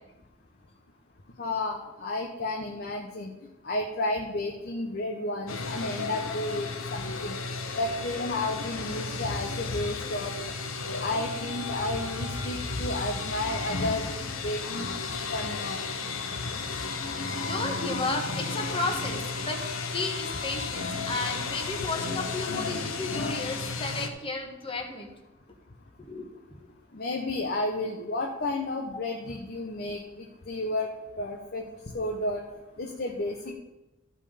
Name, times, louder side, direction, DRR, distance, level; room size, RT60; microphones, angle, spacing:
voice 1, 1.4-3.3 3.6-7.4 7.7-10.3 11.0-14.1 14.4-14.9 15.3-15.8 26.9-30.9 31.2-31.7 31.9-32.4 32.8-33.5, left 2 dB, 50° left, 0 dB, 1.0 m, -32 dB
sound 1, 5.5-24.1, left 4 dB, 90° left, 1.1 m, -33 dB
voice 2, 17.5-19.6 19.9-25.1 26.0-26.2 26.6-26.7, left 3 dB, 25° left, 2 dB, 1.5 m, -33 dB
14.0 x 5.5 x 5.1 m, 0.99 s
head